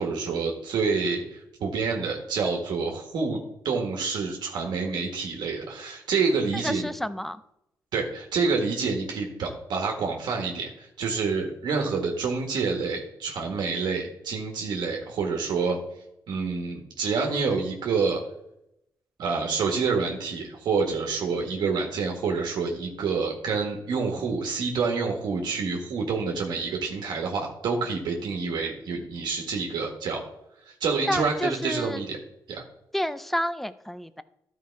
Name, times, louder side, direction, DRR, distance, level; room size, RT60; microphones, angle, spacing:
voice 1, 0.0-3.4 3.6-6.9 7.9-15.8 16.3-18.2 19.2-30.2 30.6-32.2 32.5-32.6, right 4 dB, 80° right, 1 dB, 1.6 m, -28 dB
voice 2, 6.5-7.4 31.1-32.0 32.9-34.2, equal, 5° left, 13 dB, 0.4 m, -30 dB
13.0 x 4.6 x 4.6 m, 0.81 s
cardioid pair, 130°, 7 cm